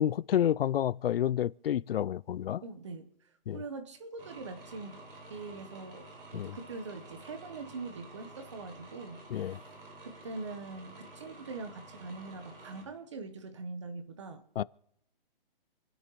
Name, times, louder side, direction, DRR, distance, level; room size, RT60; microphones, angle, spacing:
voice 1, 0.0-2.6 3.5-3.6 6.3-6.6 9.3-9.6 14.6-14.7, left 10 dB, 80° left, 0.4 m, -29 dB
voice 2, 2.6-3.1 3.5-5.0 5.3-9.2 10.0-14.4, right 3 dB, 30° right, 1.0 m, -43 dB
sound 1, 4.2-12.8, right 2 dB, 70° right, 4.2 m, -50 dB
29.0 x 9.8 x 3.1 m
hypercardioid pair, 180°, 29 cm